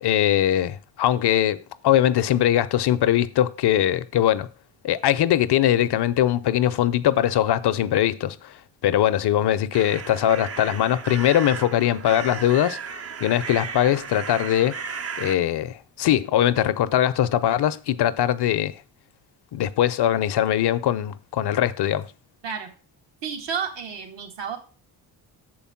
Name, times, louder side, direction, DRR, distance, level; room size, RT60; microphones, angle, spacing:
voice 1, 0.0-4.5 4.8-8.5 8.8-12.8 13.2-14.8 15.2-18.7 19.5-22.1, left 11 dB, 60° left, 0.7 m, -21 dB
sound 1, 9.7-15.4, right 6 dB, 30° right, 0.6 m, -35 dB
voice 2, 23.2-24.6, right 6 dB, 70° right, 1.7 m, -31 dB
6.9 x 4.7 x 5.7 m
supercardioid pair, 60°, 46 cm